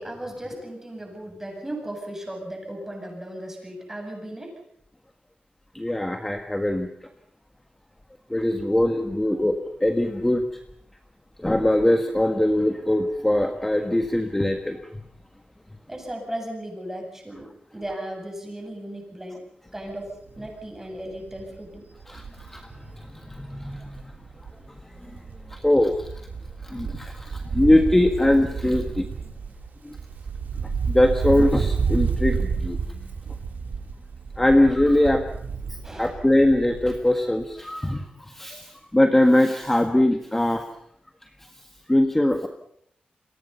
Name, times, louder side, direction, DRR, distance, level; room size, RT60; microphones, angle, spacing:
voice 1, 0.0-4.6 8.6-8.8 15.9-19.4 19.7-21.9 35.8-36.3, right 1 dB, 10° right, 2 dB, 7.7 m, -36 dB
voice 2, 5.7-6.9 8.3-10.5 11.4-14.8 22.1-22.2 22.5-22.6 23.3-24.0 25.1-25.2 25.5-26.0 26.6-29.1 29.8-29.9 30.9-32.8 34.4-35.2 36.0-40.6 41.9-42.5, left 1 dB, 10° left, 6 dB, 1.6 m, -21 dB
Wind, 20.1-20.4 20.7-20.8 21.1-24.7 25.0-37.1 37.4-37.5, right 5 dB, 75° right, 3.6 m, -30 dB
29.0 x 23.0 x 5.7 m, 0.71 s
wide cardioid pair, 120°, 3 cm